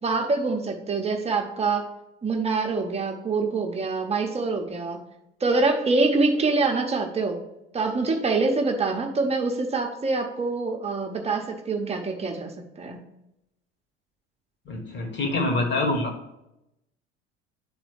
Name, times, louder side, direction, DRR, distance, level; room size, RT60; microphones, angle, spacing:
voice 1, 0.0-1.8 2.2-5.0 5.4-7.4 7.7-13.0, right 3 dB, 15° right, 3 dB, 0.9 m, -25 dB
voice 2, 14.7-16.1, left 2 dB, 30° left, 3 dB, 1.4 m, -25 dB
11.0 x 3.9 x 3.2 m, 0.89 s
figure-of-eight pair, 70°, 36 cm